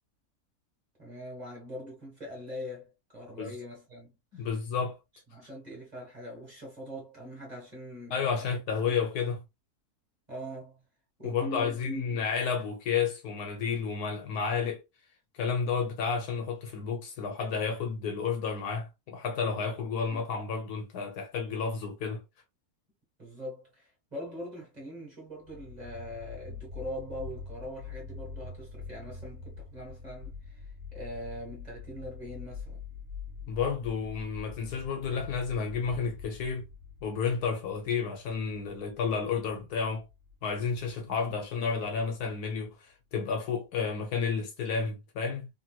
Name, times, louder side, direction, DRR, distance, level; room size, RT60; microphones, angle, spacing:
voice 1, 1.0-4.5 5.3-8.2 8.4-8.5 8.9-9.0 10.3-10.8 11.2-12.0 23.2-32.8, equal, 25° right, 1.6 m, -42 dB
voice 2, 4.3-5.0 8.1-9.4 11.2-14.8 15.4-22.2 33.5-36.7 37.0-40.1 40.4-45.5, left 5 dB, 75° left, 1.3 m, -31 dB
sound 1, 25.4-42.5, left 5 dB, 50° right, 1.6 m, -45 dB
3.2 x 2.9 x 2.2 m
omnidirectional pair, 1.7 m